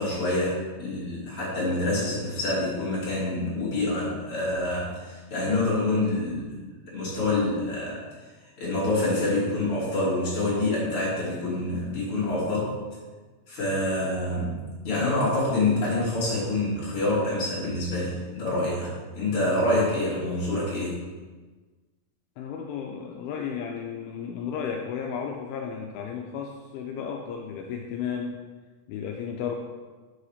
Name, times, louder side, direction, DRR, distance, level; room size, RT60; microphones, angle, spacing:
voice 1, 0.0-6.5 6.9-8.0 8.6-12.7 13.5-21.0, left 2 dB, 35° left, -8 dB, 3.6 m, -26 dB
voice 2, 22.4-28.4 28.9-29.6, left 7 dB, 85° left, 1 dB, 2.5 m, -34 dB
7.0 x 4.9 x 6.5 m, 1.3 s
omnidirectional pair, 4.5 m